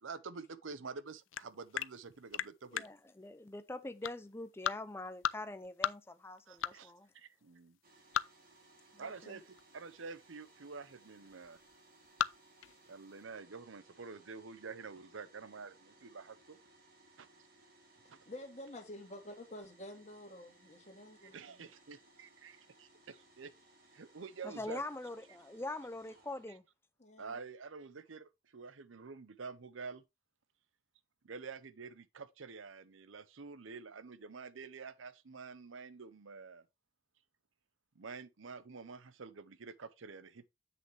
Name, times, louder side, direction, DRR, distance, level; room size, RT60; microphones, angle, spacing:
voice 1, 0.0-2.8 6.5-7.8 9.0-11.6 12.9-16.6 17.2-17.3 18.1-18.2 21.3-22.5 23.1-23.5 23.9-24.8 26.5-26.6 27.2-30.0 31.2-36.6 38.0-40.5, right 4 dB, 85° right, 0.7 m, -48 dB
sound 1, 1.1-13.2, left 10 dB, 80° left, 0.4 m, -39 dB
voice 2, 2.7-7.1 24.4-26.6, left 2 dB, 10° left, 0.5 m, -43 dB
sound 2, 7.8-26.5, right 2 dB, 50° right, 2.4 m, -64 dB
voice 3, 8.9-9.4 12.6-12.8 18.0-21.4 27.0-27.4, left 1 dB, 35° left, 2.0 m, -50 dB
7.8 x 6.4 x 3.1 m
head